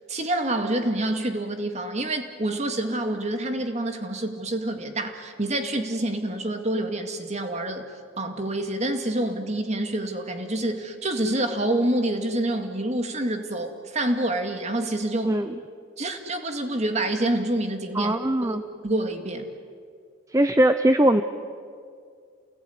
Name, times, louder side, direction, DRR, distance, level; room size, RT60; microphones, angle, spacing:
voice 1, 0.1-15.4 16.0-18.2 18.4-19.5, right 1 dB, 35° right, 6 dB, 2.2 m, -27 dB
voice 2, 15.2-15.6 17.9-18.6 20.3-21.2, right 1 dB, 15° right, 9 dB, 0.6 m, -20 dB
28.5 x 20.0 x 9.6 m, 2.2 s
head